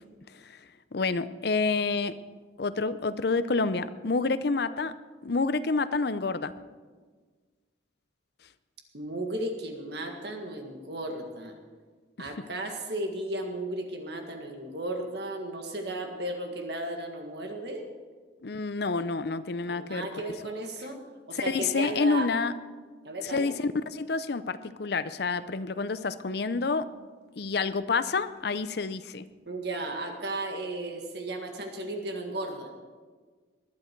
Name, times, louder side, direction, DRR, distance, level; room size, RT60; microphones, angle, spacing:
voice 1, 0.9-2.2 2.6-4.9 5.2-6.5 12.2-12.5 18.4-20.1 21.3-22.5 23.2-26.9 27.4-29.3, left 4 dB, 55° left, 14 dB, 0.6 m, -28 dB
voice 2, 8.9-11.5 12.2-17.9 19.6-21.0 21.3-22.3 23.0-23.5 29.5-32.7, right 1 dB, 55° right, 3 dB, 1.8 m, -35 dB
20.0 x 11.5 x 4.6 m, 1.5 s
head